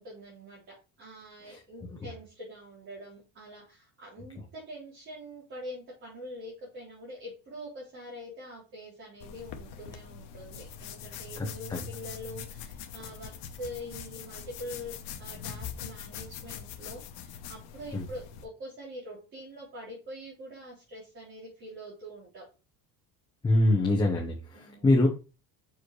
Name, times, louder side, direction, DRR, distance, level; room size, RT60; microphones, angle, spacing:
voice 1, 0.0-13.3 13.6-14.9 15.2-22.4 24.5-24.9, equal, 35° right, -6 dB, 3.3 m, -44 dB
sound 1, 9.2-18.5, left 8 dB, 80° left, 1.0 m, -43 dB
voice 2, 11.4-11.8 17.9-18.1 23.4-25.1, left 1 dB, 10° left, -1 dB, 0.8 m, -25 dB
6.3 x 4.9 x 3.1 m, 0.32 s
cardioid pair, 180°, 36 cm